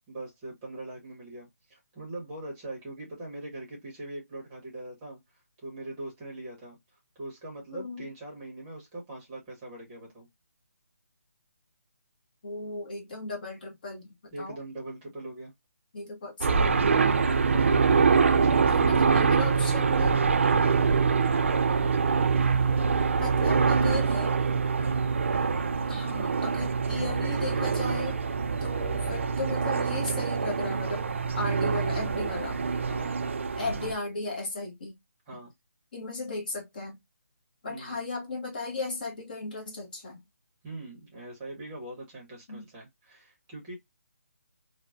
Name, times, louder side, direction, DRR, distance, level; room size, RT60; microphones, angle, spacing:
voice 1, 0.1-6.8 7.1-10.3 14.3-15.5 17.3-19.3 23.2-23.8 24.8-25.0 28.5-28.8 32.9-33.2 35.3-35.5 37.7-38.0 40.6-43.7, right 1 dB, 10° right, 0.9 m, -41 dB
voice 2, 7.7-8.1 12.4-14.6 15.9-16.8 18.2-20.2 23.2-24.3 25.9-28.2 28.6-31.0 31.4-32.6 33.6-34.9 35.9-37.0 37.6-40.2 42.5-42.6, left 3 dB, 35° left, 0.9 m, -36 dB
sound 1, 16.4-33.9, right 5 dB, 50° right, 0.4 m, -25 dB
2.9 x 2.1 x 2.4 m
hypercardioid pair, 170°, 9 cm